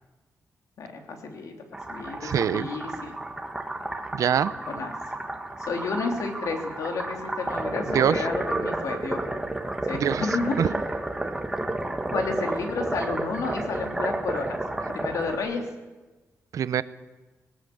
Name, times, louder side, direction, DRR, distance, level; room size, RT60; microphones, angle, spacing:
voice 1, 0.8-1.6 1.9-3.1 4.7-5.0 5.6-9.2 9.9-10.7 12.1-14.6 14.9-15.6, left 4 dB, 75° left, 2 dB, 3.3 m, -31 dB
sound 1, 1.7-15.4, right 2 dB, 10° right, 1.8 m, -31 dB
voice 2, 2.2-2.7 4.1-4.5 7.9-8.2 9.9-10.3 10.6-10.7 16.5-16.8, right 9 dB, 70° right, 15 dB, 0.8 m, -24 dB
19.0 x 17.5 x 8.0 m, 1.2 s
wide cardioid pair, 160°, 6 cm